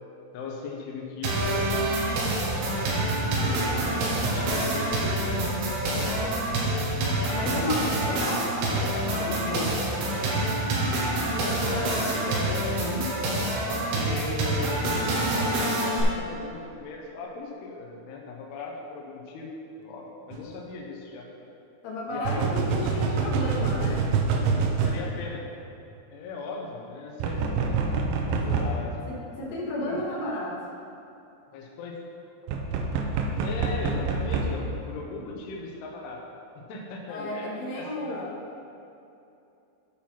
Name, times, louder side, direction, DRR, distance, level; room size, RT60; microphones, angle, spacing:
voice 1, 0.3-2.5 3.1-5.6 6.0-8.5 9.2-10.4 11.3-13.1 13.5-14.8 15.3-19.5 19.8-21.3 22.1-22.5 22.9-25.4 26.1-27.8 28.5-29.0 29.8-30.0 31.5-32.0 33.4-36.2 36.6-38.4, left 3 dB, 85° left, -1 dB, 2.3 m, -38 dB
sound 1, 1.2-7.2, right 3 dB, 55° right, 2.9 m, -37 dB
sound 2, 1.2-16.0, right 1 dB, 70° right, 2.6 m, -27 dB
voice 2, 6.0-6.3 7.3-9.6 21.8-24.1 28.5-28.6 29.1-30.6 37.1-38.3, left 1 dB, 65° left, -5 dB, 3.4 m, -33 dB
sound 3, 20.3-20.4 22.3-25.0 27.2-28.7 32.5-34.5, right 4 dB, 85° right, 2.6 m, -26 dB
12.0 x 4.5 x 5.7 m, 2.8 s
omnidirectional pair, 6.0 m